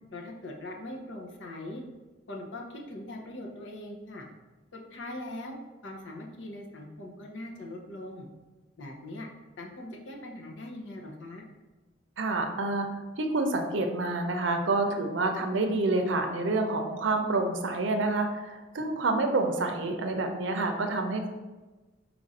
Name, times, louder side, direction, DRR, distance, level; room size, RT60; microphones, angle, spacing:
voice 1, 0.1-1.8 2.3-4.3 4.7-5.6 5.8-8.3 8.8-9.3 9.6-11.5, left 1 dB, 85° left, 1 dB, 0.7 m, -41 dB
voice 2, 12.2-12.9 13.2-21.3, right 2 dB, 85° right, 5 dB, 0.5 m, -28 dB
4.6 x 2.5 x 4.0 m, 1.2 s
head